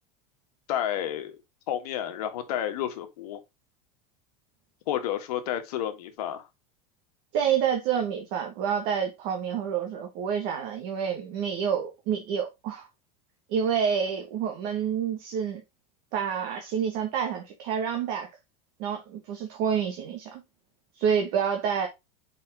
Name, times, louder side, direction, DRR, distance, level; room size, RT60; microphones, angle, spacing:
voice 1, 0.7-1.4 1.7-3.4 4.9-6.5, left 10 dB, 80° left, 1.6 m, -30 dB
voice 2, 7.3-12.9 13.5-15.6 16.1-18.3 18.8-20.4 20.9-21.9, right 7 dB, 45° right, 1.3 m, -28 dB
5.2 x 4.3 x 4.7 m
supercardioid pair, 175°, 19 cm